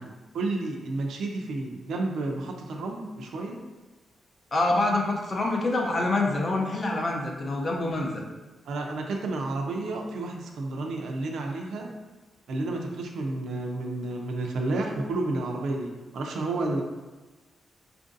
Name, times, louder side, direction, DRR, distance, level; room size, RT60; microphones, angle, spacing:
voice 1, 0.0-3.6 8.7-11.9 12.5-16.8, right 2 dB, 85° right, 2 dB, 0.5 m, -31 dB
voice 2, 4.5-8.2, left 2 dB, 30° left, 0 dB, 0.5 m, -26 dB
4.5 x 2.5 x 2.5 m, 1.2 s
wide cardioid pair, 165°, 0 cm